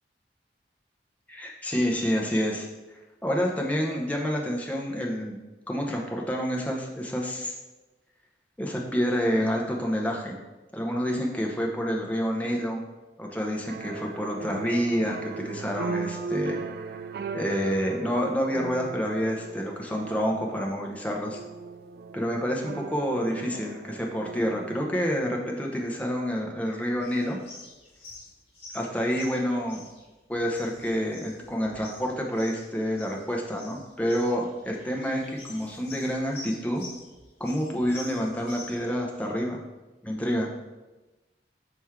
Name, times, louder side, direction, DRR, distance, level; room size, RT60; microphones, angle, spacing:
voice 1, 1.3-5.4 5.7-7.5 8.6-10.4 10.7-12.8 13.2-17.0 17.3-21.4 22.1-27.4 28.7-29.8 30.3-36.8 37.4-39.6 40.0-40.5, equal, 10° left, -1 dB, 0.7 m, -28 dB
sound 1, 13.6-24.9, right 5 dB, 60° right, 0.3 m, -37 dB
sound 2, 27.0-39.2, left 2 dB, 35° left, 1.8 m, -47 dB
6.0 x 4.5 x 3.6 m, 1.1 s
head